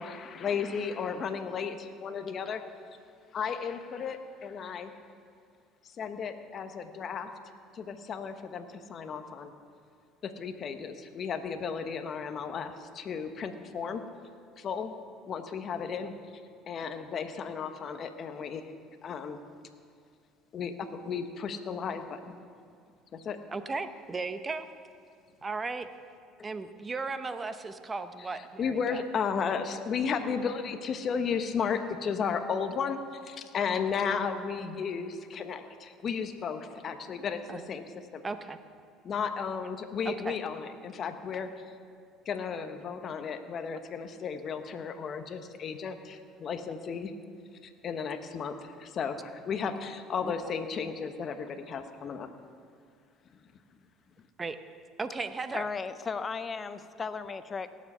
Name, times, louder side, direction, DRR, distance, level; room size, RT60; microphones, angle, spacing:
voice 1, 0.0-2.6 3.3-4.9 5.8-7.3 7.7-9.5 10.2-14.0 14.6-15.0 15.3-16.1 16.7-18.7 19.0-19.4 20.5-22.3 23.1-23.4 28.3-37.9 38.1-38.2 39.0-41.5 42.3-47.1 47.6-52.3, left 6 dB, 45° left, 8 dB, 1.0 m, -34 dB
voice 2, 23.5-24.7 25.4-25.9 26.4-29.0 35.6-35.7 37.5-37.6 38.2-38.6 40.0-40.4 50.2-50.3 54.4-54.6 55.0-55.7, right 4 dB, 25° right, 10 dB, 0.8 m, -36 dB
voice 3, 55.5-57.7, left 5 dB, 30° left, 12 dB, 0.7 m, -35 dB
18.0 x 7.4 x 5.5 m, 2.3 s
supercardioid pair, 100°, 0 cm